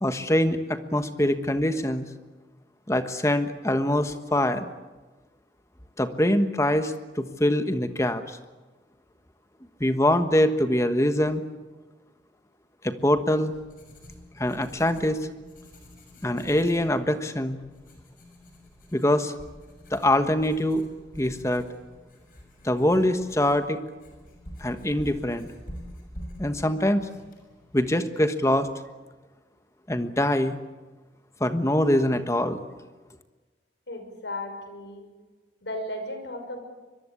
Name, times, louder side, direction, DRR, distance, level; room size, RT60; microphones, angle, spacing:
voice 1, 0.0-2.0 2.9-4.7 6.0-8.4 9.8-11.4 12.8-13.5 14.4-15.3 16.2-17.6 18.9-19.3 19.9-20.8 21.2-21.7 22.6-23.8 24.6-25.5 26.4-27.1 27.7-28.7 29.9-30.6 31.4-32.6, left 1 dB, 15° left, 9 dB, 1.3 m, -24 dB
Writing, 13.1-27.9, equal, 50° left, 6.7 m, -47 dB
voice 2, 33.9-35.1 35.6-36.6, left 1 dB, 85° left, 6 dB, 5.8 m, -35 dB
24.5 x 22.5 x 8.4 m, 1.3 s
head